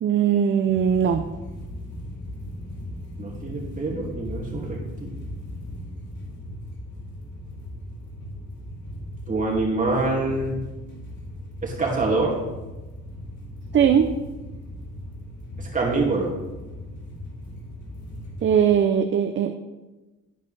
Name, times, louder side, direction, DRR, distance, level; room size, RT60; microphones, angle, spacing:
voice 1, 0.0-1.2 13.7-14.1 18.4-19.5, right 8 dB, 40° right, 7 dB, 0.5 m, -20 dB
sound 1, 0.7-18.6, left 1 dB, 70° left, 2.2 m, -38 dB
voice 2, 3.2-5.1 9.3-10.6 11.6-12.4 15.6-16.3, right 3 dB, 25° right, -3 dB, 2.4 m, -25 dB
10.5 x 5.1 x 3.4 m, 1.1 s
cardioid pair, 90°, 30 cm